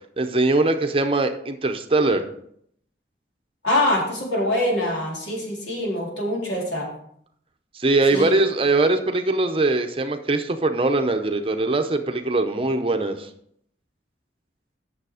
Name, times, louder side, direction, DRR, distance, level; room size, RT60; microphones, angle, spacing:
voice 1, 0.2-2.2 7.7-13.3, right 2 dB, 30° right, 6 dB, 0.7 m, -21 dB
voice 2, 3.6-6.9 8.1-8.4, left 1 dB, 75° left, -3 dB, 3.9 m, -24 dB
9.4 x 6.9 x 4.9 m, 0.69 s
head